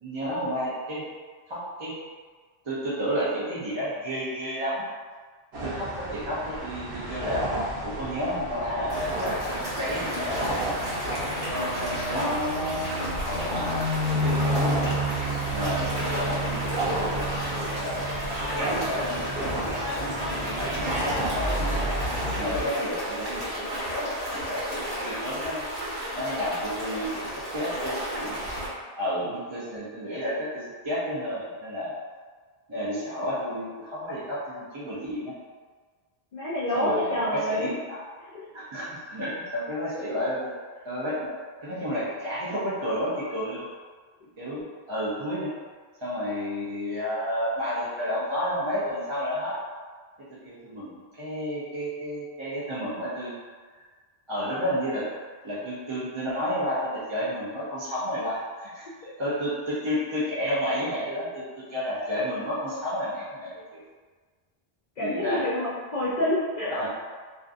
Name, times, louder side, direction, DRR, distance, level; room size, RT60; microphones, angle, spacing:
voice 1, 0.0-1.0 1.5-2.0 2.6-4.8 5.5-7.4 7.8-10.8 11.5-13.8 14.1-14.9 15.5-18.1 18.5-20.2 20.5-21.9 22.4-25.6 26.2-28.4 29.0-32.0 32.7-35.3 36.7-38.0 38.5-40.5 40.8-41.3 41.6-43.7 44.4-45.5 46.0-49.5 50.4-53.3 54.3-55.0 55.4-63.8 65.0-65.4 66.1-66.2 66.6-66.9, equal, 40° right, -9 dB, 0.5 m, -31 dB
sound 1, 5.5-22.6, right 1 dB, 90° right, 0.9 m, -30 dB
sound 2, 8.9-28.7, equal, 65° right, 1.1 m, -33 dB
voice 2, 20.2-20.6 36.3-37.7 38.3-38.4 59.0-59.1 65.0-66.7, left 1 dB, 55° left, -9 dB, 0.5 m, -28 dB
2.4 x 2.4 x 2.4 m, 1.5 s
omnidirectional pair, 1.0 m